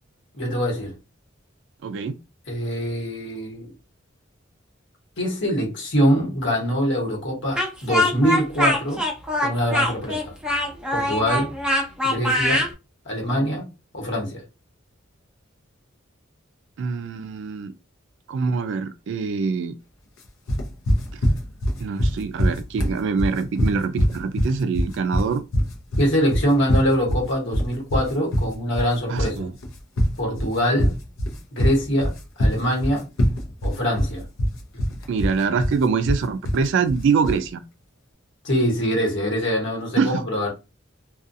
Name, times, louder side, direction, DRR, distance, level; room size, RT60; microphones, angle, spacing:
voice 1, 0.3-0.9 2.5-3.7 5.2-9.0 9.4-10.3 10.9-11.5 12.0-12.7 13.0-13.7 13.9-14.4 26.0-29.5 30.2-30.9 31.5-33.1 33.6-34.2 38.4-40.5, equal, 65° left, 1.2 m, -24 dB
voice 2, 1.8-2.2 16.8-17.7 18.3-19.7 21.1-21.2 21.8-25.4 29.1-29.5 35.1-37.6 40.0-40.1, right 5 dB, 65° right, 0.3 m, -24 dB
Speech, 7.6-12.7, left 1 dB, 5° right, 0.6 m, -23 dB
sound 1, 20.5-37.5, equal, 80° left, 0.7 m, -23 dB
2.4 x 2.3 x 2.6 m
head